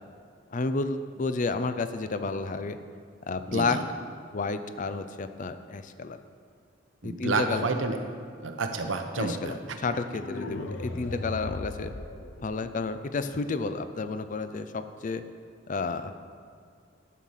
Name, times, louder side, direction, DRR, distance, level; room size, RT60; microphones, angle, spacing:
voice 1, 0.5-2.8 3.3-3.8 4.3-6.2 7.0-7.7 9.2-11.9 12.4-15.2 15.7-16.2, left 3 dB, 40° left, 10 dB, 0.5 m, -31 dB
voice 2, 3.5-3.8 7.0-8.0 8.4-9.5, right 3 dB, 75° right, 5 dB, 0.9 m, -29 dB
sound 1, 10.1-13.1, left 2 dB, 70° left, 0.8 m, -37 dB
11.0 x 6.5 x 5.7 m, 2.2 s
head